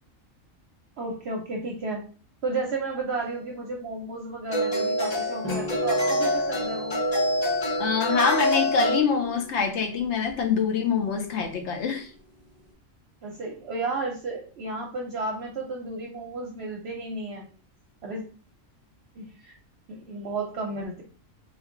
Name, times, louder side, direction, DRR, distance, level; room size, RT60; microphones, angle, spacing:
voice 1, 1.0-2.1 2.4-7.0 13.2-17.5 18.0-18.3 19.2-19.5 19.9-21.0, right 3 dB, 60° right, 0 dB, 0.8 m, -33 dB
sound 1, 3.1-3.3 4.5-9.0, equal, 30° left, 0.5 m, -26 dB
sound 2, 5.4-12.7, left 2 dB, 30° right, 0.6 m, -41 dB
voice 2, 7.8-12.1, left 6 dB, 65° left, 6 dB, 0.8 m, -25 dB
3.5 x 2.6 x 3.7 m, 0.40 s
omnidirectional pair, 1.4 m